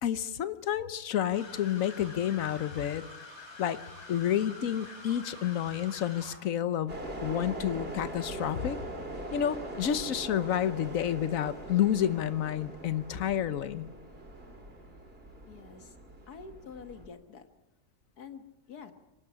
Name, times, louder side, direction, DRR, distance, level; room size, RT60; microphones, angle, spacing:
voice 1, 0.0-3.0 3.6-3.8 4.1-6.9 7.2-8.8 9.3-13.9, left 10 dB, 65° left, 13 dB, 1.3 m, -30 dB
sound 1, 1.3-6.4, left 2 dB, 45° left, 4.2 m, -47 dB
sound 2, 6.9-17.1, right 1 dB, 40° right, 3.3 m, -42 dB
voice 2, 15.5-16.0 16.3-17.5 18.2-18.9, left 6 dB, 85° left, 8 dB, 2.0 m, -47 dB
25.5 x 12.0 x 9.9 m, 1.1 s
omnidirectional pair, 1.6 m